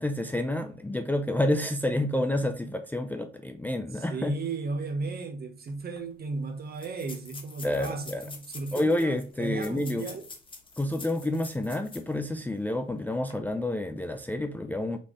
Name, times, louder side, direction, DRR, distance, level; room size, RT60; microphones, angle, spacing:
voice 1, 0.0-4.3 7.6-8.3 8.7-10.1 10.8-15.0, left 1 dB, 10° left, 0.4 m, -29 dB
voice 2, 3.9-10.3, right 3 dB, 50° right, 0.9 m, -35 dB
sound 1, 5.7-5.8 6.0-6.1 6.7-12.2 12.6-12.7 13.2-13.3, left 3 dB, 25° left, 0.8 m, -46 dB
4.2 x 3.6 x 3.1 m
wide cardioid pair, 135°, 21 cm